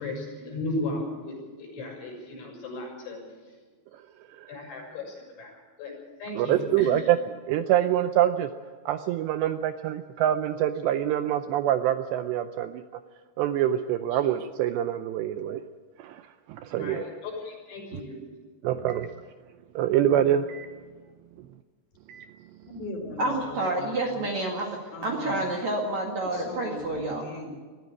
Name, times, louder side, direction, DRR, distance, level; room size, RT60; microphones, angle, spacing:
voice 1, 0.0-3.2 4.5-5.9 6.2-6.9 16.7-18.2, left 2 dB, 75° left, -1 dB, 9.1 m, -35 dB
voice 2, 6.4-8.5 8.9-12.8 13.4-15.6 16.0-17.0 18.6-19.1 19.8-20.7 22.1-22.3, right 11 dB, 80° right, 9 dB, 2.6 m, -25 dB
voice 3, 22.6-24.2 24.9-25.4 26.3-27.6, left 2 dB, 40° left, 3 dB, 5.0 m, -39 dB
voice 4, 23.2-24.7 25.0-27.3, right 2 dB, 45° right, 0 dB, 2.7 m, -29 dB
21.5 x 14.5 x 8.4 m, 1.5 s
omnidirectional pair, 5.5 m